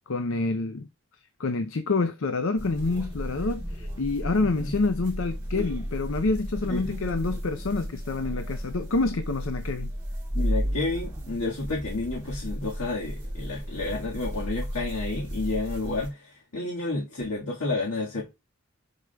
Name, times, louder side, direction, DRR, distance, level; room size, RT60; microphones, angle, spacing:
voice 1, 0.1-0.9 1.4-9.9, left 3 dB, 65° left, 0.6 m, -27 dB
sound 1, 2.6-16.1, equal, 15° right, 4.3 m, -33 dB
voice 2, 10.3-18.3, left 2 dB, 85° left, 1.7 m, -30 dB
11.0 x 4.8 x 2.3 m
head